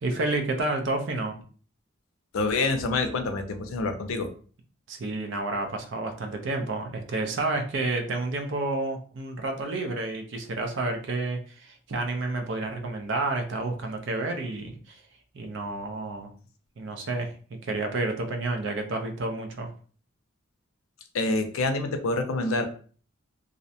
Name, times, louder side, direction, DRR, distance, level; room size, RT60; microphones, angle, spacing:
voice 1, 0.0-1.4 4.9-15.0 15.3-16.3 16.8-19.7, right 2 dB, 60° right, 4 dB, 0.5 m, -30 dB
voice 2, 2.3-4.3 21.1-22.7, left 3 dB, 90° left, 6 dB, 0.4 m, -27 dB
2.5 x 2.1 x 2.6 m, 0.42 s
head